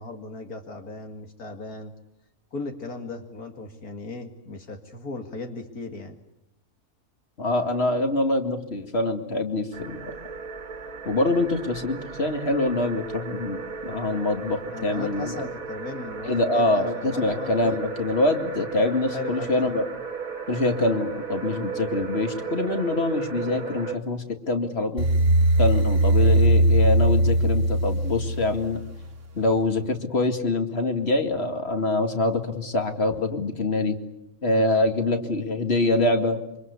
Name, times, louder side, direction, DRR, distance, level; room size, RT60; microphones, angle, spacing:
voice 1, 0.0-1.9 2.5-6.2 14.7-17.8 19.1-19.5 23.4-23.7 34.5-34.6, left 3 dB, 85° left, 4 dB, 2.7 m, -37 dB
voice 2, 7.4-10.1 11.1-15.5 16.3-19.8 20.5-25.1 25.6-28.8 29.4-34.0 34.4-36.4, left 2 dB, 45° left, 6 dB, 2.4 m, -25 dB
sound 1, 9.7-24.0, right 6 dB, 75° right, 2.1 m, -35 dB
sound 2, 25.0-29.1, right 1 dB, 55° right, 1.8 m, -20 dB
27.5 x 25.0 x 8.3 m, 0.86 s
omnidirectional pair, 1.5 m